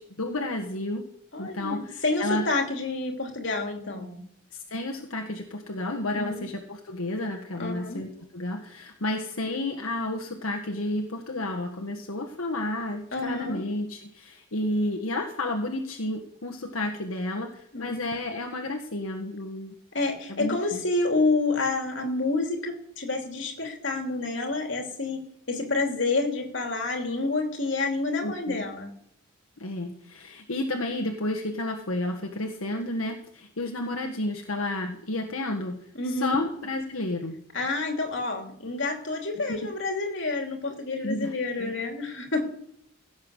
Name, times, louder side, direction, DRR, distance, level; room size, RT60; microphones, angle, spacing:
voice 1, 0.2-1.0 1.4-2.5 4.7-19.7 20.4-20.8 28.2-28.6 29.6-35.8 36.1-37.4 39.5-39.7 41.0-41.3 41.6-41.7, left 1 dB, 85° left, 2 dB, 1.5 m, -31 dB
voice 2, 1.3-4.2 6.1-6.5 7.6-8.0 13.1-13.6 17.7-18.1 19.9-25.2 25.5-28.9 35.9-36.4 37.5-42.4, left 3 dB, 60° left, 3 dB, 2.9 m, -28 dB
16.5 x 7.1 x 6.5 m, 0.69 s
head